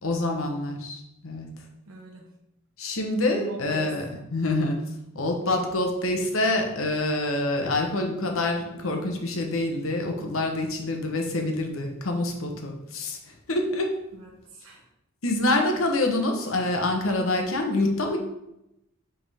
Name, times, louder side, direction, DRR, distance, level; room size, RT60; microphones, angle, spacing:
voice 1, 0.0-1.5 2.8-4.0 4.3-4.8 5.1-13.9 15.2-18.2, left 2 dB, 75° left, 3 dB, 1.0 m, -26 dB
voice 2, 1.9-2.4 3.3-4.0 14.1-14.9, right 1 dB, 85° right, -1 dB, 1.0 m, -40 dB
7.7 x 3.7 x 3.5 m, 0.86 s
head